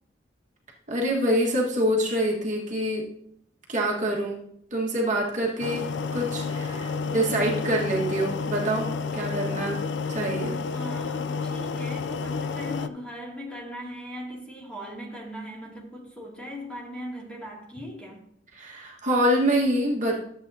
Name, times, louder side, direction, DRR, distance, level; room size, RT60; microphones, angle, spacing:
voice 1, 0.9-3.0 3.7-4.4 4.7-5.9 6.1-8.9 9.1-9.8 10.1-10.6 18.5-20.2, right 1 dB, 45° right, 1.6 m, -25 dB
sound 1, 5.6-12.9, left 5 dB, 80° left, 0.4 m, -30 dB
voice 2, 10.7-18.2, equal, 5° left, 2.5 m, -39 dB
13.0 x 7.9 x 2.8 m
head